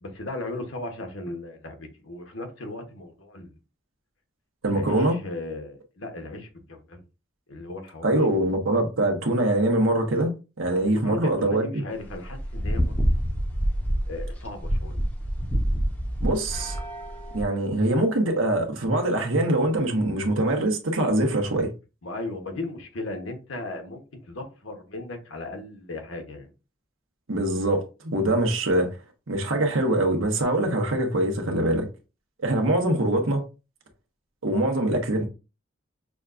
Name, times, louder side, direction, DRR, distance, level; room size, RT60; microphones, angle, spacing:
voice 1, 0.0-3.5 4.7-7.0 7.5-8.1 10.9-13.2 14.1-15.0 22.0-24.0 24.3-26.5, left 2 dB, 70° left, 1.0 m, -36 dB
voice 2, 4.6-5.2 8.0-11.8 16.2-16.8 17.3-21.7 27.3-28.9 29.3-31.9 32.4-33.4 34.4-35.3, right 1 dB, 85° right, 1.0 m, -23 dB
sound 1, 12.0-17.5, equal, 10° left, 0.7 m, -27 dB
6.2 x 2.3 x 2.5 m
head